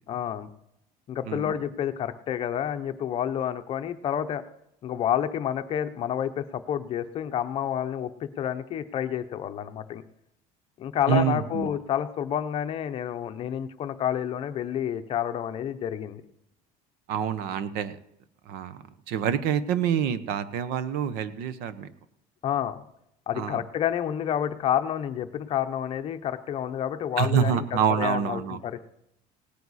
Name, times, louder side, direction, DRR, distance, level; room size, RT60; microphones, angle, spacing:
voice 1, 0.1-0.5 1.1-4.4 4.8-10.0 10.8-16.2 22.4-22.8 23.3-28.8, left 10 dB, 35° left, 9 dB, 0.6 m, -29 dB
voice 2, 11.1-11.7 17.1-18.0 18.5-18.8 19.1-21.9 23.3-23.6 27.2-28.6, right 8 dB, 75° right, 14 dB, 0.9 m, -26 dB
18.0 x 9.5 x 4.1 m, 0.79 s
cardioid pair, 180°, 16 cm